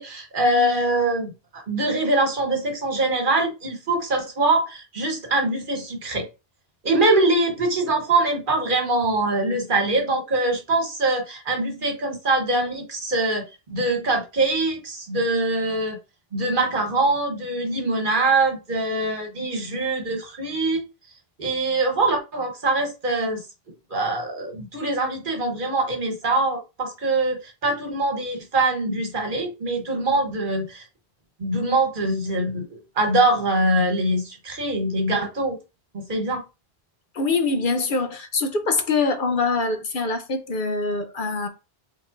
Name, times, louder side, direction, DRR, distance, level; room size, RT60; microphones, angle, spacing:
voice 1, 0.0-6.3 6.8-16.0 16.3-20.8 21.4-23.4 23.9-30.8 31.4-35.6 35.9-36.4, right 2 dB, 55° right, 1.3 m, -23 dB
voice 2, 37.1-41.5, left 3 dB, 55° left, 0.8 m, -24 dB
5.1 x 3.7 x 2.6 m
omnidirectional pair, 1.1 m